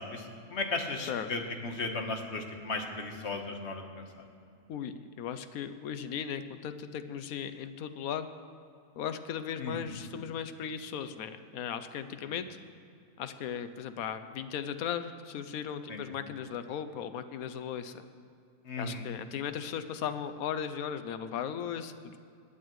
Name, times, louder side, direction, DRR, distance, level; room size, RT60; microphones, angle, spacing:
voice 1, 0.0-4.2 9.6-10.0 15.9-16.0 18.6-19.0, left 3 dB, 50° left, 3 dB, 1.4 m, -36 dB
voice 2, 4.7-8.3 9.0-12.5 13.2-18.0 18.8-22.2, left 8 dB, 75° left, 11 dB, 1.0 m, -37 dB
19.5 x 11.0 x 3.1 m, 2.5 s
omnidirectional pair, 1.6 m